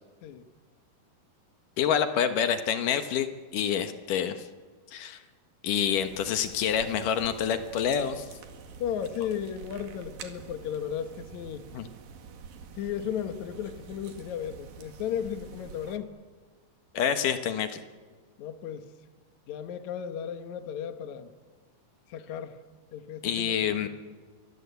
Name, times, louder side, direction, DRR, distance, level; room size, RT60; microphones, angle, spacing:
voice 1, 1.8-3.3 3.5-4.5 4.9-5.2 5.6-8.3 11.7-11.9 16.9-17.8 23.2-23.9, left 8 dB, 70° left, 9 dB, 2.1 m, -27 dB
sound 1, 6.0-16.0, right 6 dB, 55° right, 3.2 m, -47 dB
voice 2, 8.8-11.6 12.8-16.1 18.4-18.9 19.5-21.3 22.1-22.6 22.9-23.9, left 9 dB, 85° left, 9 dB, 1.6 m, -35 dB
29.5 x 23.5 x 8.2 m, 1.5 s
omnidirectional pair, 5.3 m